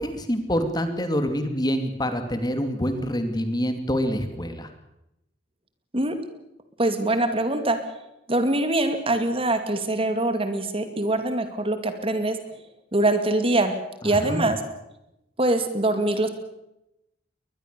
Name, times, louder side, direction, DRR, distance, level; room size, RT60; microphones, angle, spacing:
voice 1, 0.0-4.7 14.0-14.5, equal, 25° left, 8 dB, 2.6 m, -26 dB
voice 2, 6.8-7.8 8.3-12.4 12.9-13.7 14.0-14.6 15.4-16.3, right 2 dB, 30° right, 8 dB, 2.3 m, -23 dB
22.5 x 20.5 x 6.9 m, 0.86 s
head